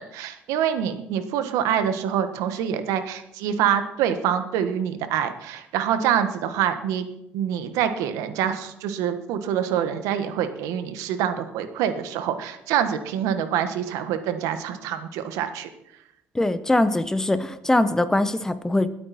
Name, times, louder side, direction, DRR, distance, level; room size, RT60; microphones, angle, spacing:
voice 1, 0.0-7.0 7.3-15.7, right 9 dB, 85° right, 9 dB, 1.4 m, -25 dB
voice 2, 16.3-18.9, left 1 dB, 10° left, 12 dB, 0.9 m, -22 dB
20.5 x 8.7 x 4.3 m, 0.80 s
cardioid pair, 110°, 5 cm